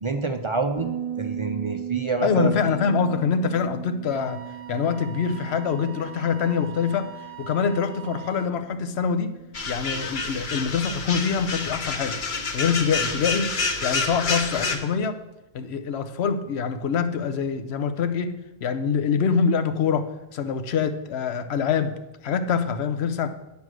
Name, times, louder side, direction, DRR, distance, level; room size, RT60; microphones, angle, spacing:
voice 1, 0.0-0.9 1.2-2.5, right 4 dB, 40° right, 5 dB, 0.5 m, -26 dB
Bass guitar, 0.8-10.1, right 9 dB, 30° left, 1.1 m, -38 dB
voice 2, 2.2-7.1 7.4-9.4 9.7-12.2 12.5-13.5 13.8-15.2 15.5-22.0 22.2-23.3, left 6 dB, 85° left, 9 dB, 1.0 m, -25 dB
Wind instrument woodwind instrument, 4.1-8.6, right 11 dB, 65° right, 0.9 m, -43 dB
sound 1, 9.5-14.8, left 4 dB, 55° left, 1.0 m, -28 dB
9.5 x 5.2 x 6.2 m, 1.0 s
omnidirectional pair, 1.0 m